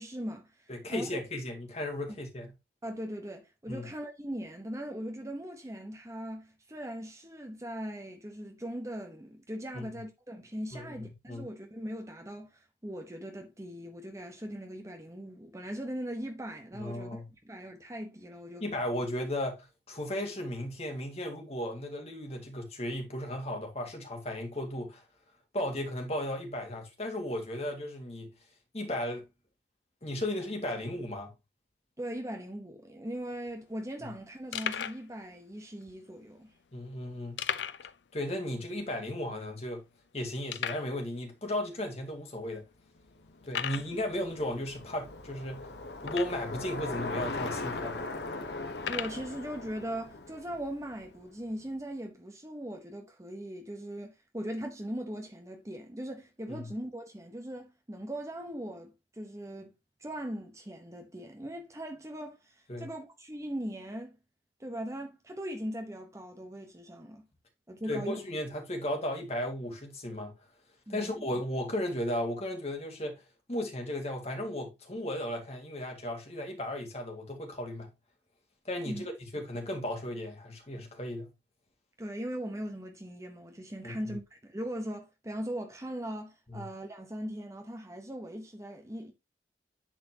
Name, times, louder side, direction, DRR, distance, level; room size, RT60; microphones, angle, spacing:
voice 1, 0.0-1.2 2.8-17.2 17.4-18.6 32.0-36.5 43.7-43.8 48.8-59.7 60.0-64.2 64.6-67.2 67.7-68.2 70.9-71.2 78.8-79.0 82.0-89.1, equal, 15° right, 1.0 m, -40 dB
voice 2, 0.7-2.5 3.7-3.9 9.7-9.9 10.7-11.5 16.7-17.3 18.6-25.0 25.5-28.3 28.7-29.2 30.0-31.3 36.7-37.4 38.1-39.8 40.1-42.6 43.4-45.7 46.0-48.0 56.5-56.7 62.7-62.9 67.9-70.3 70.9-73.2 73.5-77.9 78.7-81.3 83.8-84.2 86.5-86.7, left 1 dB, 35° left, 2.0 m, -35 dB
sound 1, 33.1-33.2 33.3-33.5 34.0-34.1 34.5-35.0 35.8-35.9 37.4-38.0 38.2-38.3 38.8-38.9 39.5-39.6 40.5-40.9 41.7-41.8 42.4-42.5 43.5-43.9 46.0-46.6 47.4-47.5 48.8-49.2, left 8 dB, 85° left, 0.5 m, -35 dB
Bicycle, 43.1-51.4, left 2 dB, 70° left, 1.0 m, -40 dB
10.0 x 4.2 x 2.9 m
head